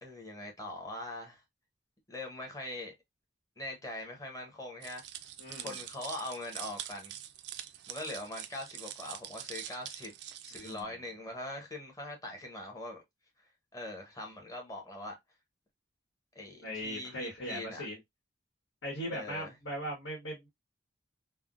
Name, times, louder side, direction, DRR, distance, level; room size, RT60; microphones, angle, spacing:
voice 1, 0.0-1.4 2.1-2.9 3.6-5.1 5.6-7.1 7.9-10.1 10.4-13.0 13.7-15.2 16.3-17.8 19.1-19.5, left 1 dB, 20° left, 0.9 m, -42 dB
sound 1, 4.8-10.8, right 11 dB, 65° right, 0.4 m, -44 dB
voice 2, 5.4-5.8 10.5-11.0 16.6-18.0 18.8-20.5, equal, 75° left, 1.3 m, -39 dB
3.4 x 2.1 x 2.4 m
head